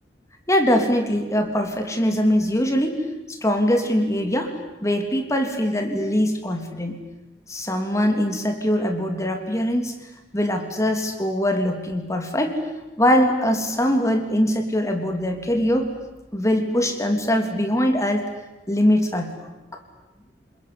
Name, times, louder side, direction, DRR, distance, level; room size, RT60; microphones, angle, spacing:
voice 1, 0.5-4.5 4.8-7.0 7.5-9.9 10.3-12.6 13.0-15.9 16.3-18.2 18.7-19.5, equal, 15° left, 4 dB, 3.3 m, -22 dB
28.0 x 21.5 x 9.9 m, 1.1 s
head